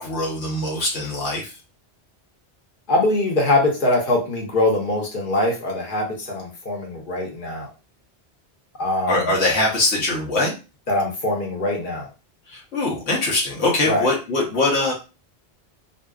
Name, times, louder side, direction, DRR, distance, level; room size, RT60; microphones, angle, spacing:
voice 1, 0.0-1.6 9.1-10.5 12.5-14.9, left 2 dB, 80° left, -2 dB, 1.0 m, -22 dB
voice 2, 2.9-7.7 8.8-9.3 10.9-12.1 13.9-14.1, left 2 dB, 50° left, -1 dB, 0.9 m, -22 dB
2.6 x 2.2 x 2.3 m, 0.31 s
omnidirectional pair, 1.1 m